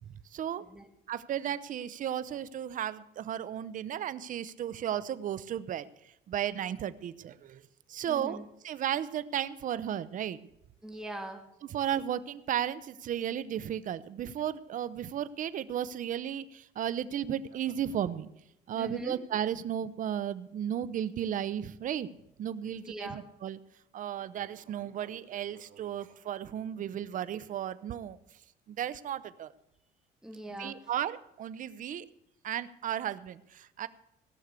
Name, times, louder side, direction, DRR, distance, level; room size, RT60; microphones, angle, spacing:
voice 1, 0.3-0.6 1.1-5.9 6.3-7.6 7.9-8.4 8.6-10.5 11.7-18.3 18.7-23.6 23.9-28.2 28.7-29.5 30.6-32.1 32.4-33.9, right 10 dB, 50° right, 16 dB, 0.7 m, -34 dB
voice 2, 8.0-8.4 10.8-11.4 18.7-19.2 22.7-23.2 30.2-30.8, right 1 dB, 5° right, 3 dB, 2.3 m, -41 dB
17.0 x 6.5 x 8.2 m, 0.83 s
cardioid pair, 110°, 17 cm